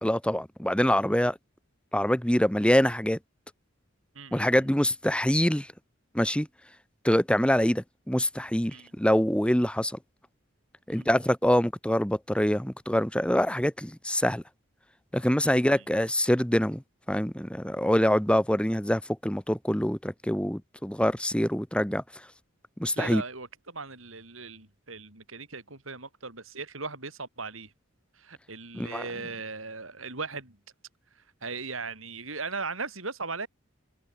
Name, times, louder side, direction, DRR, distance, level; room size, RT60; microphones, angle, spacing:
voice 1, 0.0-1.4 1.9-3.2 4.3-5.7 6.2-6.5 7.0-10.0 10.9-14.4 15.1-16.8 17.1-22.0 22.8-23.2 28.7-29.0, equal, 5° left, 1.7 m, -25 dB
voice 2, 4.1-4.7 8.7-8.9 10.9-11.1 15.4-15.9 23.0-27.7 28.1-30.6 31.2-33.5, right 4 dB, 80° right, 6.9 m, -38 dB
head